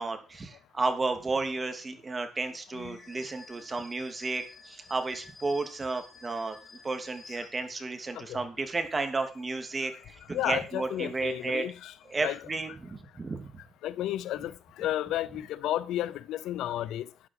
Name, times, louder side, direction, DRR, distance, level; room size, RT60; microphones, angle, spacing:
voice 1, 0.0-6.6 6.8-11.7 12.1-13.6, right 3 dB, 30° right, 3.0 m, -32 dB
sound 1, 2.7-8.0 8.4-12.7, left 3 dB, 35° left, 3.6 m, -54 dB
voice 2, 10.3-11.9 12.2-12.4 13.8-17.1, left 13 dB, 85° left, 0.7 m, -32 dB
13.0 x 9.9 x 4.8 m
cardioid pair, 90°, 0 cm